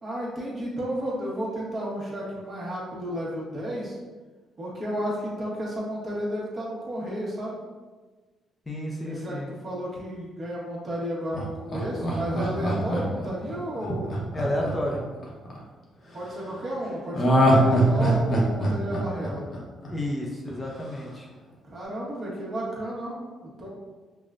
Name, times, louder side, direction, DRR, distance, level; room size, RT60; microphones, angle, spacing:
voice 1, 0.0-4.0 4.6-7.6 9.0-14.1 16.1-19.5 21.7-23.7, equal, 40° right, -5 dB, 1.3 m, -32 dB
voice 2, 8.7-9.5 14.3-15.1 19.9-21.3, left 1 dB, 20° left, -2 dB, 0.6 m, -31 dB
Laughter, 11.3-15.6 17.1-20.2 20.5-20.6, right 1 dB, 45° left, 0.9 m, -23 dB
5.4 x 2.2 x 2.5 m, 1.3 s
cardioid pair, 90°, 0 cm